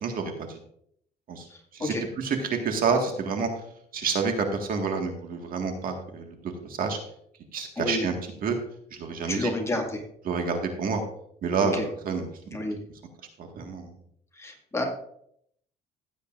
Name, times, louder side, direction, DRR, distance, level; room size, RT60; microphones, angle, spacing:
voice 1, 0.0-0.6 1.3-1.5 1.7-3.5 3.9-7.0 7.5-8.2 8.4-8.6 8.9-9.5 10.3-11.0 11.4-11.8 12.0-12.6 13.4-13.9, right 5 dB, 55° right, 4 dB, 1.7 m, -28 dB
voice 2, 1.5-2.0 7.8-8.1 9.3-10.0 11.7-11.9 12.5-12.8 14.4-14.9, left 2 dB, 15° left, 1 dB, 2.1 m, -30 dB
15.5 x 8.2 x 2.5 m, 0.69 s
cardioid pair, 110°, 17 cm